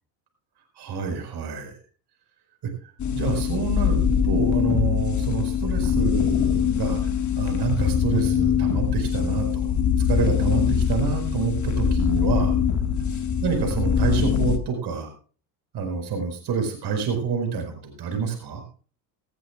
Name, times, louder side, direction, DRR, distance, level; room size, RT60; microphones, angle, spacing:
voice 1, 0.8-1.8 2.6-2.7 3.1-7.0 7.4-9.7 10.0-12.6 13.4-15.1 15.7-18.6, right 5 dB, 50° right, 4 dB, 5.2 m, -27 dB
sound 1, 3.0-14.6, left 7 dB, 35° left, 1.8 m, -23 dB
18.0 x 14.0 x 2.4 m, 0.38 s
supercardioid pair, 90°, 48 cm